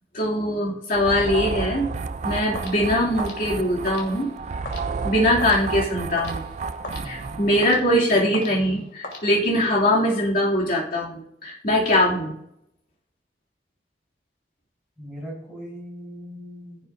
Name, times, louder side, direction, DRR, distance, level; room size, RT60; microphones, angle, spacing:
voice 1, 0.1-1.9 2.2-4.3 5.0-6.5 7.0-12.3, left 1 dB, 50° left, -4 dB, 2.6 m, -22 dB
sound 1, 0.9-7.8, right 4 dB, 40° right, 0.4 m, -31 dB
sound 2, 2.5-9.8, left 2 dB, 75° left, 2.5 m, -40 dB
voice 2, 6.9-7.4 15.0-16.8, equal, 5° right, -7 dB, 4.4 m, -39 dB
15.5 x 6.9 x 2.6 m, 0.75 s
head